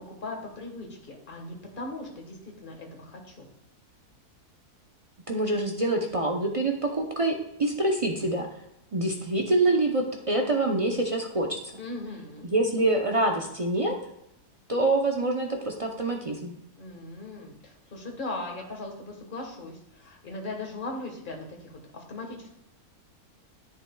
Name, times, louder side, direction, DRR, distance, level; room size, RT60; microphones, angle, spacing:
voice 1, 0.1-3.5 11.8-12.5 16.8-22.5, left 2 dB, 35° left, 1 dB, 1.5 m, -39 dB
voice 2, 5.3-8.5 8.9-11.6 12.4-13.9 14.7-16.5, right 2 dB, 50° right, 2 dB, 0.4 m, -26 dB
10.0 x 7.9 x 2.3 m, 0.81 s
omnidirectional pair, 1.6 m